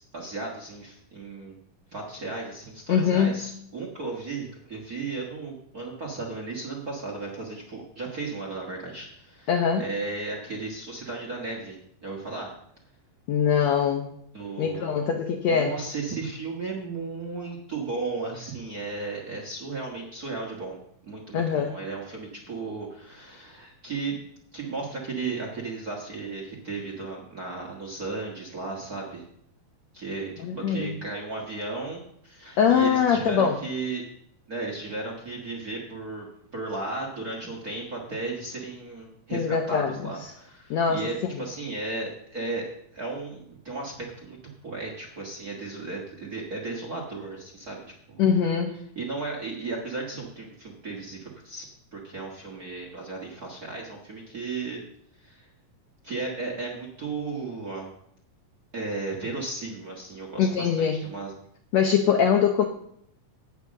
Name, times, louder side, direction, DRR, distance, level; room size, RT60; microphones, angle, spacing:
voice 1, 0.0-1.6 1.9-12.5 14.3-15.0 15.4-24.3 24.5-29.3 29.9-34.0 34.5-36.3 36.5-47.8 48.1-48.3 48.9-51.6 51.9-54.8 55.2-55.5 56.0-57.9 58.7-61.3, right 3 dB, 40° right, 0 dB, 1.4 m, -35 dB
voice 2, 2.9-3.4 9.5-9.8 13.3-14.1 14.6-15.7 21.3-21.7 30.4-30.9 32.6-33.6 39.3-39.9 40.7-41.0 48.2-48.7 60.4-61.0 61.7-62.7, left 7 dB, 70° left, 4 dB, 1.7 m, -22 dB
9.2 x 8.2 x 6.4 m, 0.69 s
omnidirectional pair, 3.9 m